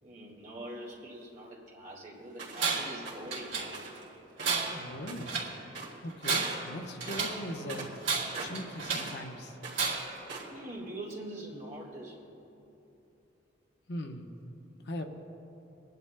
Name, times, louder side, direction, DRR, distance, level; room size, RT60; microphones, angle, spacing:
voice 1, 0.0-3.8 9.8-12.3, right 1 dB, 40° right, -3 dB, 2.0 m, -44 dB
sound 1, 2.4-2.7 3.0-3.3 3.7-4.0 4.3-5.4 5.7-6.1 6.3-6.7 7.0-9.3 9.5-10.6, right 4 dB, 65° right, 2.3 m, -43 dB
Tools, 2.6-3.0 3.3-4.0 4.4-5.6 6.1-7.5 8.0-9.2 9.7-10.2, right 5 dB, 90° right, 2.4 m, -32 dB
voice 2, 4.7-5.4 6.0-7.9 8.4-9.6 13.9-14.3 14.9-15.0, equal, 60° left, 4 dB, 0.8 m, -39 dB
26.5 x 10.5 x 2.2 m, 2.9 s
head